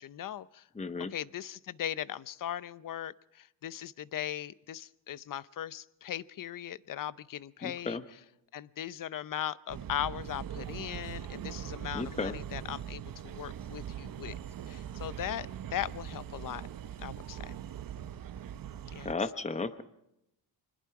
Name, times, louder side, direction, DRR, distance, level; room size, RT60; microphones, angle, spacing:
voice 1, 0.0-0.7 1.1-8.2 8.5-14.3 14.7-16.7 17.0-17.6 18.9-19.1, left 11 dB, 45° left, 18 dB, 0.7 m, -39 dB
voice 2, 0.8-1.1 7.6-8.0 11.9-12.3 19.0-19.8, left 4 dB, 15° left, 11 dB, 1.1 m, -34 dB
sound 1, 9.7-19.1, right 9 dB, 45° right, 0.9 m, -41 dB
26.0 x 21.0 x 4.8 m, 0.85 s
cardioid pair, 100°, 47 cm